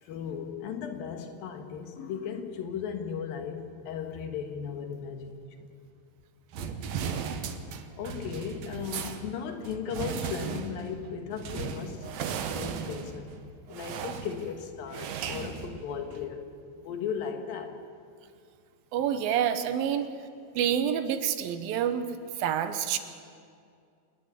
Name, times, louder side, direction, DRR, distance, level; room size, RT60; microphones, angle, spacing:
voice 1, 0.0-5.8 8.0-12.1 12.5-13.3 13.7-16.5 16.8-17.8 19.9-20.1, left 7 dB, 75° left, 5 dB, 3.2 m, -36 dB
sound 1, 6.5-16.3, right 6 dB, 65° right, 1.8 m, -37 dB
voice 2, 7.1-7.4 18.9-20.1 20.6-22.1 22.4-23.0, right 9 dB, 85° right, 10 dB, 2.8 m, -28 dB
28.0 x 9.5 x 9.8 m, 2.3 s
omnidirectional pair, 4.2 m